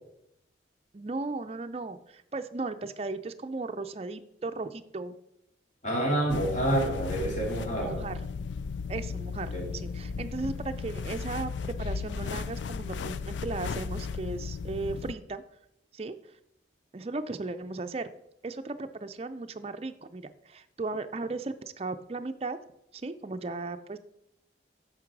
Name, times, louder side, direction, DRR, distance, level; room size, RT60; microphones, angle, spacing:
voice 1, 0.9-5.1 7.8-8.2 8.9-11.5 11.8-15.4 15.9-16.1 16.9-18.1 18.4-22.6 22.9-24.0, right 3 dB, 35° right, 9 dB, 0.4 m, -36 dB
voice 2, 5.8-8.0 9.5-9.7, right 1 dB, 40° left, -2 dB, 2.7 m, -28 dB
sound 1, 6.3-15.1, left 5 dB, 90° left, 0.4 m, -35 dB
8.6 x 6.0 x 4.7 m, 0.79 s
head